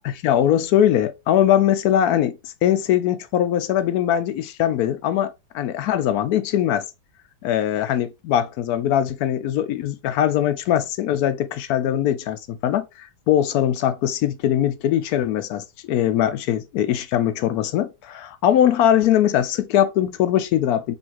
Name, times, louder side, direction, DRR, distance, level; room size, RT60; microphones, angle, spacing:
voice 1, 0.0-6.9 7.4-20.9, left 11 dB, 70° left, 1.0 m, -21 dB
5.5 x 2.7 x 2.9 m
omnidirectional pair, 1.8 m